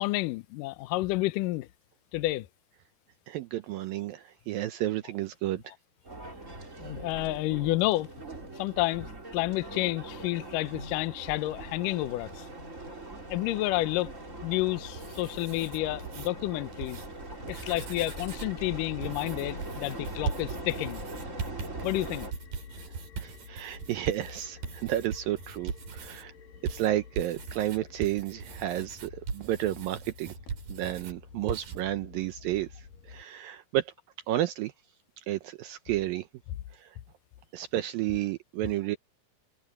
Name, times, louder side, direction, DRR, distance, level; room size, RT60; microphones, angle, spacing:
voice 1, 0.0-1.7 2.1-2.5 6.8-8.1 8.6-12.5 13.3-14.1 14.4-17.0 17.5-21.0 21.8-22.3, left 18 dB, 80° left, 2.0 m, -30 dB
voice 2, 3.3-5.7 6.5-6.7 22.9-26.3 26.6-30.3 30.7-33.9 34.3-34.7 35.3-36.3 36.7-37.0 37.5-39.0, right 14 dB, 75° right, 2.3 m, -32 dB
sound 1, 6.0-22.3, right 2 dB, 20° right, 3.6 m, -41 dB
sound 2, 14.3-33.2, left 6 dB, 60° left, 4.0 m, -50 dB
sound 3, 14.8-16.3 16.7-17.1 17.4-18.6 19.0-26.2 26.7-31.2 31.5-31.8, right 5 dB, 60° right, 5.1 m, -40 dB
omnidirectional pair, 4.7 m